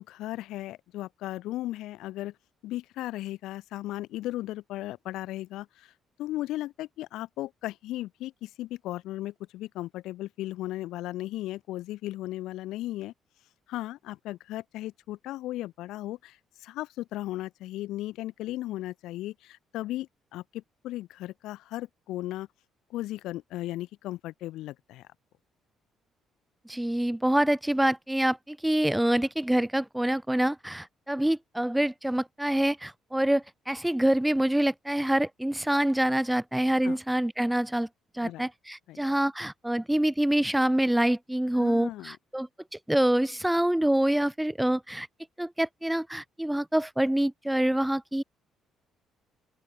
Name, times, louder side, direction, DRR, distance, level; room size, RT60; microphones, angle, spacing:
voice 1, 0.0-2.3 2.6-5.9 6.2-13.1 13.7-22.5 22.9-25.0 36.8-37.0 38.2-38.5 38.9-39.0 41.5-42.2, left 15 dB, 70° left, 1.9 m, -36 dB
voice 2, 26.7-37.9 38.1-45.1 45.4-48.2, right 1 dB, 5° right, 1.8 m, -26 dB
open air
hypercardioid pair, 50°, 0 cm